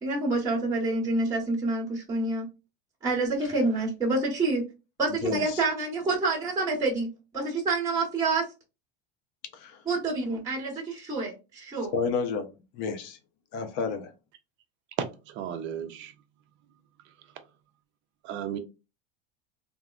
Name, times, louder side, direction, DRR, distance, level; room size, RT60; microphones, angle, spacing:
voice 1, 0.0-2.4 3.0-4.6 5.0-7.1 7.3-8.5 9.8-11.9, right 3 dB, 10° right, 0.9 m, -27 dB
voice 2, 5.2-5.6 9.5-9.8 11.9-12.5 12.7-13.2 13.5-14.1, left 5 dB, 60° left, 0.7 m, -30 dB
voice 3, 15.4-16.1 18.2-18.6, right 9 dB, 40° right, 0.4 m, -34 dB
3.5 x 2.1 x 2.3 m
supercardioid pair, 145°, 33 cm